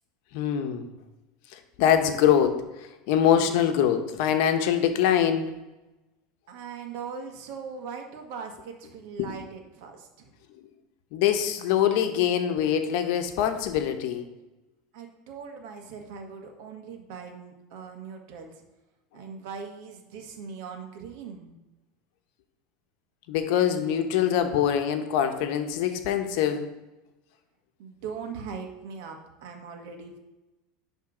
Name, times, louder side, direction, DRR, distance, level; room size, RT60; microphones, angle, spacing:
voice 1, 0.3-0.9 1.5-2.6 3.1-5.5 9.2-9.4 11.1-14.2 23.3-26.7, left 9 dB, 65° left, 7 dB, 0.9 m, -24 dB
voice 2, 6.5-10.3 14.9-18.5 19.1-21.6 27.8-30.2, right 6 dB, 65° right, 3 dB, 1.5 m, -40 dB
10.0 x 3.5 x 5.0 m, 1.0 s
supercardioid pair, 125°, 0 cm